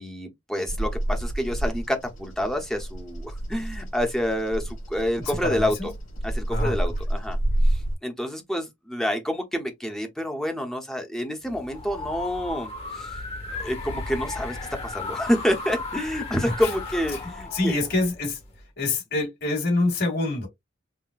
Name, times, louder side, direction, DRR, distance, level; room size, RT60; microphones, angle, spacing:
voice 1, 0.0-5.9 6.2-7.4 7.6-13.2 13.6-14.6 14.8-17.8, equal, 5° left, 0.8 m, -28 dB
Bird vocalization bird call bird song, 0.7-7.9, right 1 dB, 80° left, 3.0 m, -29 dB
voice 2, 5.2-5.9 6.5-6.8 16.5-16.6 17.5-18.4 18.8-20.5, left 2 dB, 55° left, 2.3 m, -25 dB
sound 1, 11.5-18.6, left 3 dB, 30° left, 1.2 m, -35 dB
5.6 x 2.1 x 2.4 m
head